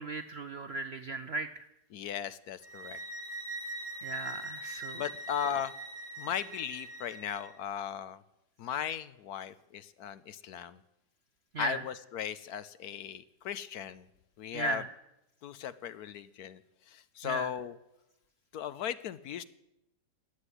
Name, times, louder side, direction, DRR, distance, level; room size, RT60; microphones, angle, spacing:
voice 1, 0.0-1.7 4.0-5.0 11.5-11.8 14.5-14.9 17.2-17.5, right 2 dB, 55° right, 9 dB, 0.7 m, -36 dB
voice 2, 1.9-3.0 5.0-5.7 6.2-8.2 8.6-10.8 11.6-14.1 14.4-14.8 15.4-16.6 16.9-17.8 18.5-19.4, left 9 dB, 70° left, 14 dB, 1.2 m, -37 dB
sound 1, 2.6-7.5, right 2 dB, 30° right, 2.2 m, -42 dB
15.0 x 9.6 x 9.9 m, 0.90 s
omnidirectional pair, 1.8 m